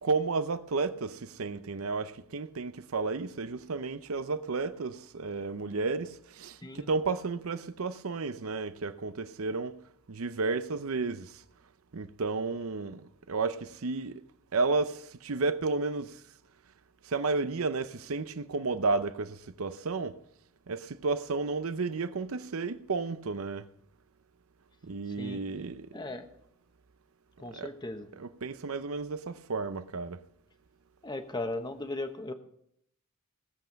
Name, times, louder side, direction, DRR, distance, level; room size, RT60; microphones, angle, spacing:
voice 1, 0.0-9.8 10.1-11.4 11.9-14.2 14.5-16.2 17.0-20.2 20.7-23.7 24.8-25.9 27.5-27.7 28.1-30.2, right 4 dB, 65° right, 0.6 m, -32 dB
voice 2, 25.9-26.3 27.4-28.1 31.0-32.3, left 2 dB, 20° left, 1.1 m, -37 dB
17.5 x 7.8 x 5.2 m
head